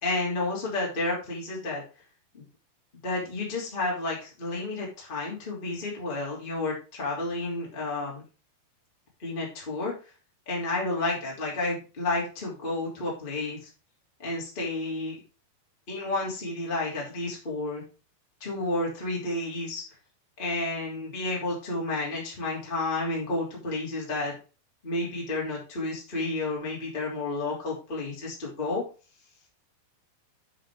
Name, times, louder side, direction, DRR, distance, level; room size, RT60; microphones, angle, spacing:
voice 1, 0.0-1.8 2.4-2.5 3.0-8.2 9.2-9.9 10.5-13.7 14.2-15.1 15.9-17.8 18.4-19.8 20.4-24.3 24.8-28.8, left 2 dB, 15° left, -4 dB, 2.5 m, -31 dB
7.8 x 7.3 x 3.7 m, 0.34 s
omnidirectional pair, 4.5 m